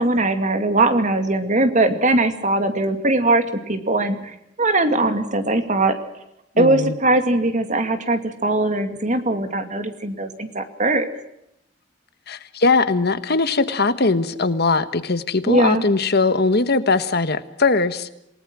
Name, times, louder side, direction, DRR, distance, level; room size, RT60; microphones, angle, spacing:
voice 1, 0.0-6.0 6.6-11.1 15.5-15.8, right 2 dB, 40° right, 8 dB, 2.4 m, -20 dB
voice 2, 6.5-6.9 12.3-18.1, left 3 dB, 55° left, 12 dB, 1.3 m, -20 dB
28.0 x 18.5 x 6.2 m, 0.82 s
head